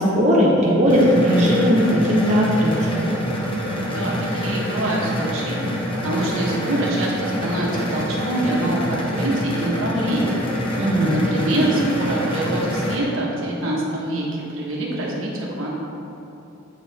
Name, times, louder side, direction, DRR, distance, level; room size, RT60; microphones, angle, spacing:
voice 1, 0.0-3.1 10.8-11.2, equal, 35° right, -5 dB, 0.8 m, -18 dB
sound 1, 0.9-13.0, equal, 25° left, 0.9 m, -26 dB
voice 2, 3.8-10.4 10.7-15.7, right 1 dB, 80° right, -4 dB, 1.2 m, -25 dB
8.1 x 4.9 x 3.4 m, 2.8 s
head